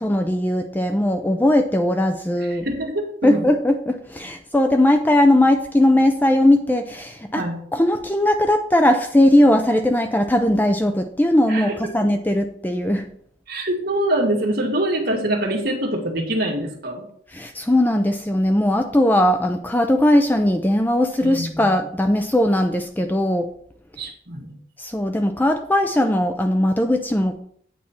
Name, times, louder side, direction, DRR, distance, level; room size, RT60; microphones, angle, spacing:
voice 1, 0.0-2.7 3.2-7.4 7.7-13.1 17.3-23.5 24.8-27.4, left 1 dB, 10° left, 6 dB, 0.4 m, -19 dB
voice 2, 2.4-3.5 7.4-7.6 11.5-11.8 13.5-17.0 21.2-21.6 24.0-24.5, right 1 dB, 50° right, 0 dB, 1.9 m, -24 dB
8.5 x 4.2 x 5.8 m, 0.62 s
head